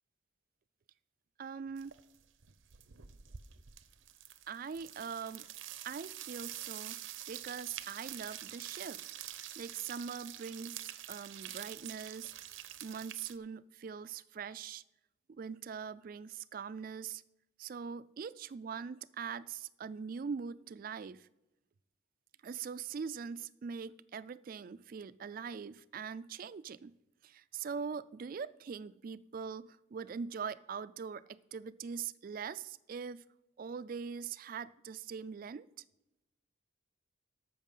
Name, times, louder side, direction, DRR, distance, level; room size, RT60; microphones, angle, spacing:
voice 1, 1.4-2.0 4.5-5.5 5.8-7.0 7.3-9.1 9.6-12.3 12.8-14.8 15.3-17.2 17.6-21.3 22.4-27.0 27.2-33.2 33.6-35.7, right 6 dB, 45° right, 0.3 m, -42 dB
sound 1, 1.8-2.2 2.4-13.4, right 12 dB, 75° right, 0.7 m, -47 dB
13.5 x 6.0 x 5.5 m
head